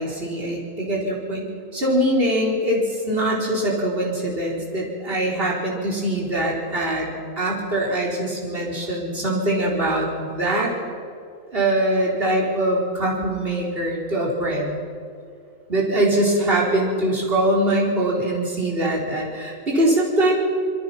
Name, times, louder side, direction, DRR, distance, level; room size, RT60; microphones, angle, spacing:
voice 1, 0.0-10.7 11.5-14.8 15.7-20.4, right 1 dB, 45° right, -3 dB, 4.5 m, -23 dB
26.0 x 23.5 x 5.9 m, 2.3 s
omnidirectional pair, 1.4 m